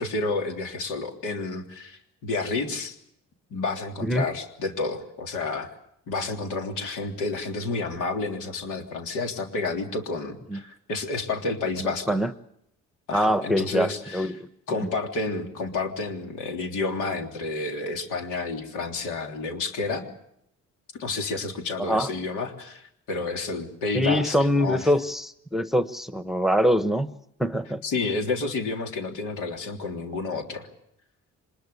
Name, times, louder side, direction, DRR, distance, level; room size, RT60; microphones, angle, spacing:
voice 1, 0.0-3.0 3.5-5.7 6.1-12.2 13.1-14.3 14.7-20.0 21.0-24.9 27.8-30.7, left 3 dB, 90° left, 2 dB, 3.5 m, -30 dB
voice 2, 11.8-12.3 13.1-14.3 14.8-14.9 21.8-22.1 23.9-27.1 27.4-27.8, equal, ahead, 11 dB, 1.0 m, -24 dB
25.5 x 20.5 x 7.1 m, 0.75 s
cardioid pair, 90°, 30 cm